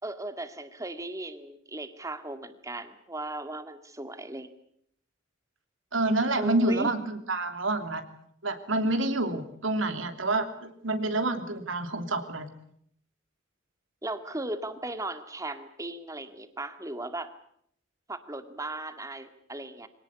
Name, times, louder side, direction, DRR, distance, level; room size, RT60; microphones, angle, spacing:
voice 1, 0.0-4.5 6.4-6.9 14.0-17.3 18.1-19.9, right 2 dB, 15° right, 9 dB, 1.9 m, -37 dB
voice 2, 5.9-8.0 8.4-12.5, right 2 dB, 80° right, 7 dB, 3.1 m, -28 dB
25.0 x 18.0 x 9.8 m, 0.69 s
head